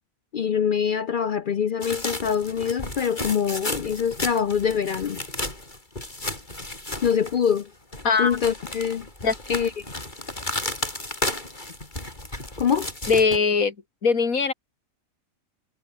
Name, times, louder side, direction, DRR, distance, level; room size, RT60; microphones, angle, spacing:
voice 1, 0.3-5.2 7.0-7.7 8.2-9.1 9.5-9.8 12.6-12.9, left 7 dB, 55° left, 0.6 m, -24 dB
sound 1, 1.8-7.6 7.9-13.4, left 1 dB, 35° left, 4.9 m, -33 dB
voice 2, 8.0-8.4 9.2-9.3 13.1-13.7 14.0-14.5, left 5 dB, 80° left, 2.7 m, -20 dB
omnidirectional pair, 1.4 m